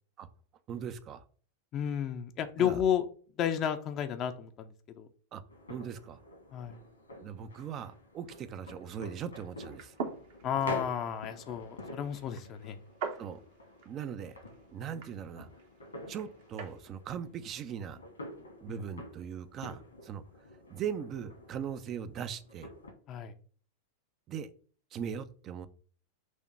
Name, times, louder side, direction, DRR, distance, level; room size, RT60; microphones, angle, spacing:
voice 1, 0.7-1.2 2.6-2.8 5.3-5.4 5.7-6.2 7.2-10.0 13.2-13.4 13.9-14.4 14.7-15.5 16.1-18.0 18.6-20.2 20.7-22.7 24.3-24.5 24.9-25.7, right 8 dB, 30° right, 12 dB, 0.6 m, -39 dB
voice 2, 1.7-3.0 3.4-5.1 6.5-6.8 10.4-12.8 18.7-18.8 23.1-23.3, left 9 dB, 35° left, 6 dB, 0.7 m, -32 dB
sound 1, 5.5-22.9, left 1 dB, 80° left, 2.2 m, -48 dB
sound 2, 9.6-16.8, right 5 dB, 50° right, 1.1 m, -45 dB
6.3 x 2.9 x 5.8 m, 0.42 s
figure-of-eight pair, 90°, 0 cm